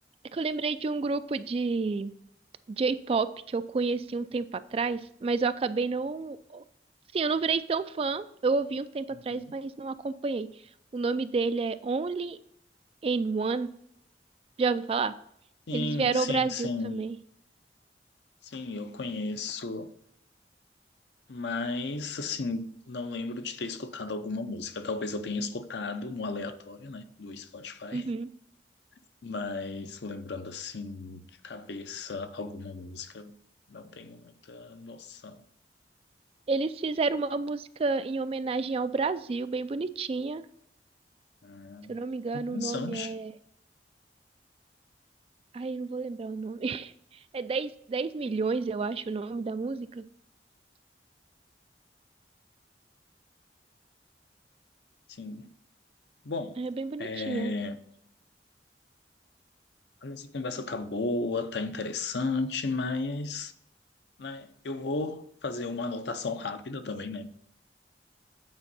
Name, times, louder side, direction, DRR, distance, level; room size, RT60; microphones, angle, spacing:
voice 1, 0.3-2.1 2.8-6.6 7.1-10.5 10.9-12.4 13.0-13.7 14.6-15.1 15.7-17.2 27.9-28.3 36.5-40.5 41.9-43.3 45.5-46.9 47.3-50.0 56.6-57.5, right 4 dB, 35° right, 0.3 m, -30 dB
voice 2, 9.1-9.6 15.7-17.0 18.4-19.9 21.3-28.1 29.2-33.4 33.7-35.4 41.4-42.0 42.3-43.1 55.1-55.5 56.2-56.6 57.0-57.8 60.0-63.5 64.2-67.4, left 3 dB, 75° left, 0.6 m, -34 dB
8.8 x 4.4 x 4.1 m
head